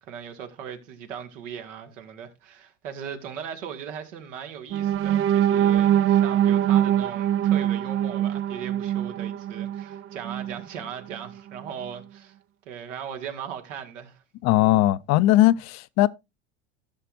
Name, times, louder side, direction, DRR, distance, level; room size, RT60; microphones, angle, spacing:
voice 1, 0.0-12.4 12.7-14.2, right 8 dB, 75° right, 2.1 m, -38 dB
sound 1, 4.7-10.6 11.1-11.3 11.7-11.9, right 11 dB, 40° right, 0.5 m, -23 dB
voice 2, 14.4-16.1, left 15 dB, 45° left, 0.6 m, -19 dB
15.5 x 6.6 x 2.5 m
hypercardioid pair, 100°, 37 cm